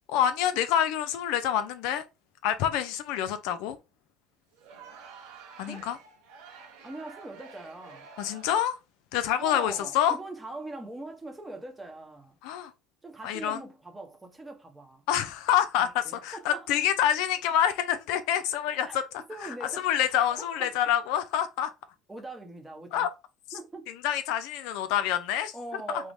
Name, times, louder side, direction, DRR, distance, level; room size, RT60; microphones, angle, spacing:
voice 1, 0.1-2.0 2.4-3.8 5.6-6.0 8.2-8.8 9.1-10.2 12.4-12.7 13.2-13.6 15.1-19.0 19.8-21.7 22.9-23.1 24.0-25.5 25.9-26.0, left 10 dB, 75° left, 0.4 m, -27 dB
Crowd, 4.5-8.7, right 5 dB, 80° right, 0.7 m, -49 dB
voice 2, 6.8-8.1 9.4-12.4 13.0-15.0 15.7-16.7 18.8-19.0 19.3-20.7 22.1-23.1 23.5-23.9 25.5-26.1, right 2 dB, 15° right, 0.7 m, -42 dB
3.0 x 2.0 x 2.6 m
supercardioid pair, 95°, 0 cm